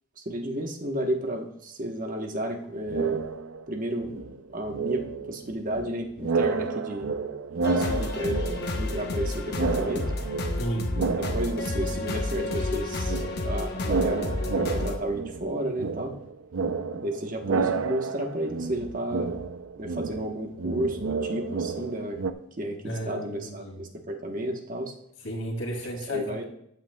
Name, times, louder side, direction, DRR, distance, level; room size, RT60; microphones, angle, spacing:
voice 1, 0.2-3.2 3.7-4.1 4.5-7.1 7.5-8.4 8.8-10.1 10.9-16.1 16.9-19.4 19.8-22.2 22.6-24.9 26.1-26.4, right 1 dB, 40° right, 3 dB, 1.1 m, -32 dB
sound 1, 2.9-3.7 4.0-5.9 6.2-9.2 9.5-12.1 12.3-22.3, right 4 dB, 90° right, 0.6 m, -31 dB
sound 2, 7.6-15.0, left 2 dB, 50° left, 1.0 m, -30 dB
voice 2, 10.6-10.9 22.8-23.8 25.2-26.4, right 1 dB, 70° left, 0 dB, 2.6 m, -33 dB
13.5 x 8.9 x 2.3 m, 0.74 s
head